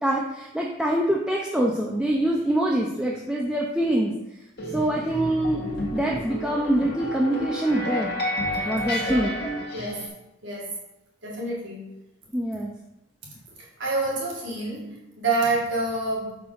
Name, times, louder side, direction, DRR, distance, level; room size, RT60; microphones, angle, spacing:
voice 1, 0.0-4.1 4.7-5.6 5.9-8.1 8.6-9.4 12.3-12.7, right 1 dB, 5° right, -2 dB, 0.5 m, -24 dB
sound 1, 4.6-10.1, left 1 dB, 50° left, 1.5 m, -31 dB
voice 2, 8.9-9.3 9.7-10.0 10.4-10.8 11.2-11.9 13.6-16.4, right 2 dB, 60° right, -4 dB, 1.8 m, -28 dB
5.0 x 5.0 x 6.4 m, 0.92 s
head